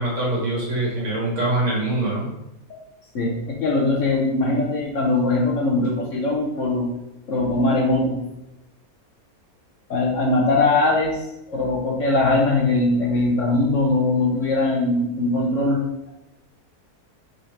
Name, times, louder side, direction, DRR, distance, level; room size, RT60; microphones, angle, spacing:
voice 1, 0.0-2.3, right 2 dB, 55° right, -4 dB, 1.7 m, -23 dB
voice 2, 3.1-6.9 7.3-8.2 9.9-11.2 11.5-15.8, left 2 dB, 60° left, -1 dB, 1.0 m, -21 dB
4.2 x 3.9 x 3.2 m, 0.89 s
omnidirectional pair, 1.6 m